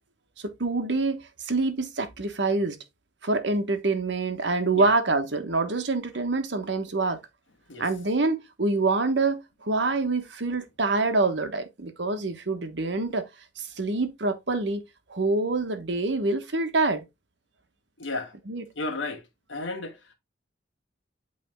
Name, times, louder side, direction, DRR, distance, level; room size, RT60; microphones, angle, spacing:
voice 1, 0.4-2.8 3.2-7.2 7.8-13.2 13.6-14.8 15.1-17.0 18.5-18.6, right 3 dB, 65° right, 1.2 m, -26 dB
voice 2, 18.0-18.3 18.7-19.2 19.5-20.0, left 2 dB, 85° left, 1.5 m, -33 dB
8.6 x 3.4 x 3.5 m
head